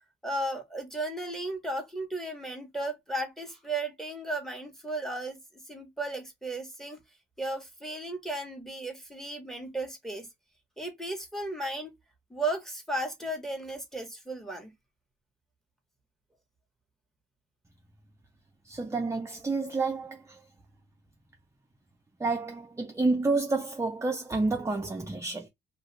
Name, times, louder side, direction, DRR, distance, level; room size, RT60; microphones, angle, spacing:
voice 1, 0.2-5.4 5.7-7.0 7.4-10.3 10.8-11.9 12.3-14.7, right 2 dB, ahead, 1.0 m, -35 dB
voice 2, 18.7-20.4 22.2-25.5, right 3 dB, 15° right, 0.5 m, -29 dB
2.5 x 2.3 x 3.0 m
cardioid pair, 90°, 20 cm